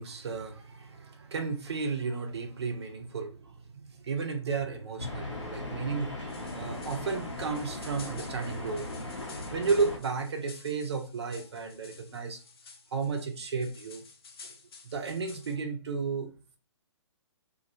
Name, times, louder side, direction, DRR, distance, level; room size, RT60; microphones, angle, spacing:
voice 1, 0.0-8.9 9.5-12.4 12.9-14.0 14.8-16.3, right 4 dB, 65° right, 4 dB, 0.5 m, -33 dB
sound 1, 5.0-10.0, left 2 dB, 80° left, 0.9 m, -38 dB
sound 2, 6.3-15.6, left 4 dB, 55° left, 0.5 m, -52 dB
2.2 x 2.1 x 2.6 m, 0.36 s
figure-of-eight pair, 125°, 15 cm